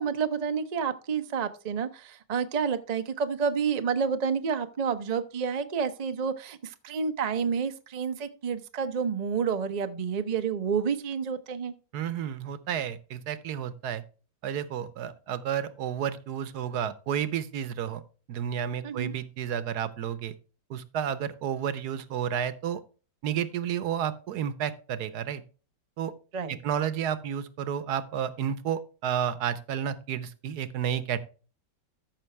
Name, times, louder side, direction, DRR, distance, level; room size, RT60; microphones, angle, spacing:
voice 1, 0.0-11.7 18.8-19.1 26.3-26.6, right 6 dB, 55° right, 9 dB, 0.4 m, -29 dB
voice 2, 11.9-14.0 14.4-18.0 18.3-20.3 20.7-22.8 23.2-25.4 26.0-26.1 26.5-31.2, right 9 dB, 70° right, 14 dB, 1.2 m, -31 dB
13.5 x 5.9 x 3.3 m, 0.36 s
omnidirectional pair, 1.9 m